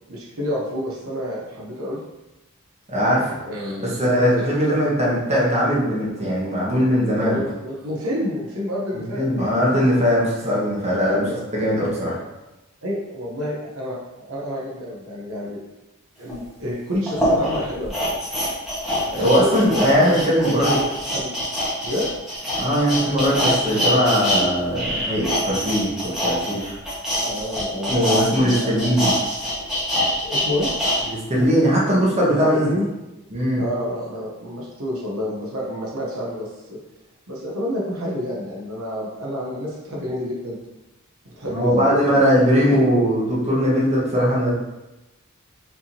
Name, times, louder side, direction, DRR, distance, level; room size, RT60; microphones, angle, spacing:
voice 1, 0.1-2.0 3.4-3.9 4.3-4.5 7.2-9.2 9.7-10.0 11.0-11.4 12.8-15.6 16.2-18.0 18.3-18.5 19.2-20.1 21.1-21.3 21.8-22.1 27.2-27.9 28.3-28.8 30.2-30.7 32.3-32.9 33.6-36.8 37.3-40.6 41.2-42.2, equal, 75° right, -4 dB, 1.0 m, -29 dB
voice 2, 2.9-3.4 3.8-7.4 8.9-11.2 11.5-12.2 19.1-20.8 22.6-26.7 27.9-29.1 31.1-32.7 33.3-33.6 41.4-44.5, equal, 30° right, -6 dB, 1.3 m, -20 dB
sound 1, 16.3-16.4 17.1-24.4 24.7-31.0 31.4-31.5, equal, ahead, 1.4 m, -24 dB
4.9 x 3.6 x 2.8 m, 1.0 s
head